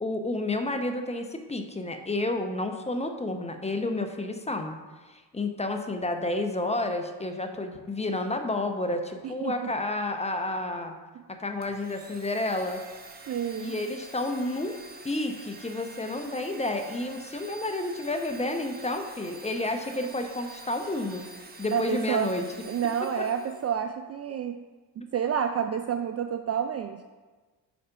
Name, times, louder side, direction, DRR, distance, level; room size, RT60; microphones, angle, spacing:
voice 1, 0.0-4.8 5.1-11.0 11.3-12.8 13.6-14.8 15.0-21.3 21.6-22.5, left 2 dB, 15° left, 5 dB, 0.7 m, -30 dB
voice 2, 9.2-9.5 13.3-13.8 21.7-22.3 22.7-24.6 25.0-27.0, right 8 dB, 35° right, 7 dB, 0.4 m, -29 dB
Domestic sounds home sounds, 11.6-23.7, right 3 dB, 20° right, 1.0 m, -47 dB
5.0 x 4.2 x 5.6 m, 1.3 s
supercardioid pair, 60°, 46 cm